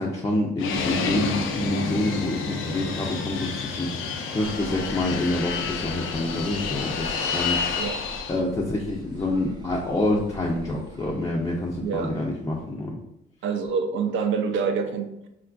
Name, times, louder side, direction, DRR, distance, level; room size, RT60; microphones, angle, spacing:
voice 1, 0.0-3.9 4.3-7.6 8.3-13.0, left 2 dB, 15° left, -3 dB, 0.4 m, -27 dB
Fixed-wing aircraft airplane, 0.6-8.4, left 5 dB, 90° left, 0.4 m, -29 dB
Trumpet, 1.5-6.6, right 2 dB, 55° right, 0.8 m, -50 dB
sound 1, 4.3-12.7, equal, 20° right, 0.7 m, -44 dB
voice 2, 11.8-12.1 13.4-15.3, right 5 dB, 75° right, 6 dB, 0.5 m, -26 dB
3.7 x 2.4 x 2.3 m, 0.82 s
cardioid pair, 90°, 20 cm